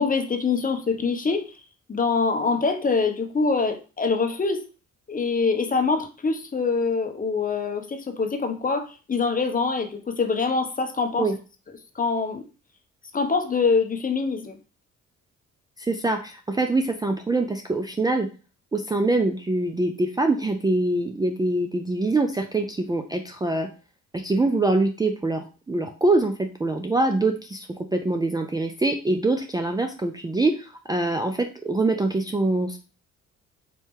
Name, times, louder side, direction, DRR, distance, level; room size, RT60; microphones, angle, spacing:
voice 1, 0.0-1.5 1.9-4.7 5.1-11.3 11.9-12.4 13.1-14.6, left 4 dB, 30° left, 0.8 m, -24 dB
voice 2, 15.8-18.3 18.7-23.7 24.1-32.8, right 2 dB, 15° right, 0.4 m, -24 dB
4.3 x 2.7 x 3.6 m
cardioid pair, 90°, 30 cm